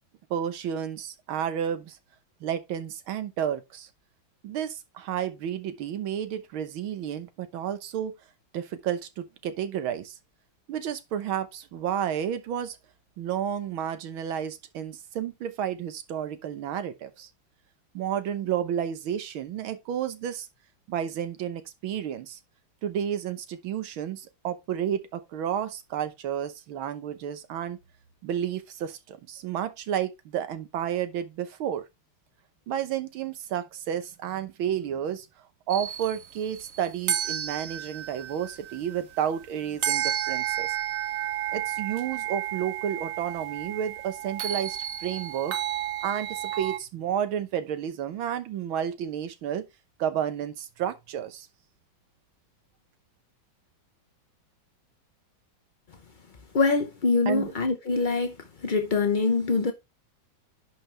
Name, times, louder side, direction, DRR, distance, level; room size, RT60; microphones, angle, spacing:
voice 1, 0.3-2.0 2.4-3.9 4.4-8.1 8.5-10.2 10.7-12.8 13.2-17.3 17.9-20.5 20.9-22.4 22.8-27.8 28.2-31.9 32.7-35.3 35.7-40.7 41.5-45.6 46.0-49.7 50.0-51.5 57.3-57.5, right 9 dB, 85° right, 1.8 m, -31 dB
sound 1, 35.7-46.8, right 11 dB, 55° right, 0.9 m, -32 dB
voice 2, 56.5-58.3 58.6-59.7, left 4 dB, 55° left, 0.5 m, -24 dB
11.0 x 5.0 x 3.3 m
omnidirectional pair, 2.2 m